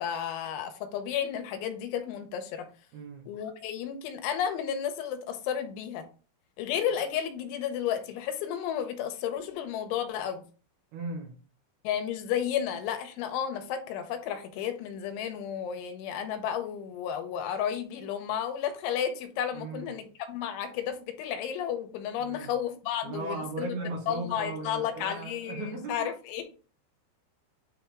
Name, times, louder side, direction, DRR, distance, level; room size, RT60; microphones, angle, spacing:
voice 1, 0.0-2.7 3.3-6.0 6.6-10.4 11.8-23.7 24.1-26.4, left 9 dB, 85° left, 7 dB, 3.2 m, -32 dB
voice 2, 2.9-3.3 10.9-11.4 19.5-19.9 22.2-22.5 23.0-26.1, right 3 dB, 70° right, 1 dB, 2.8 m, -37 dB
9.0 x 3.5 x 3.4 m, 0.37 s
omnidirectional pair, 5.5 m